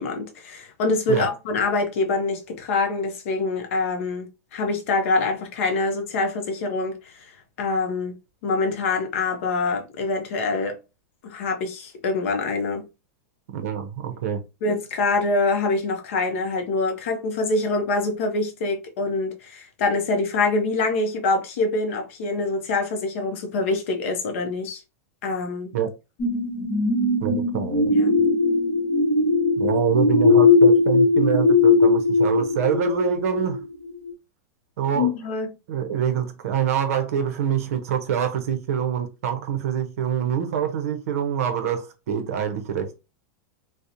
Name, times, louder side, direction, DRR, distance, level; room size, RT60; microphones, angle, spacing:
voice 1, 0.0-7.1 7.6-8.1 8.4-10.8 11.2-12.8 14.6-24.8 25.2-25.7 27.9-28.2 34.9-35.5, left 3 dB, 55° left, 0.5 m, -25 dB
voice 2, 13.5-14.4 14.7-14.8 25.7-25.9 27.2-27.9 29.6-33.6 34.8-35.1 35.7-43.0, right 8 dB, 65° right, 0.5 m, -25 dB
sound 1, 26.2-33.6 34.1-34.2, left 3 dB, 40° left, 0.9 m, -19 dB
2.8 x 2.0 x 2.4 m
supercardioid pair, 175°, 8 cm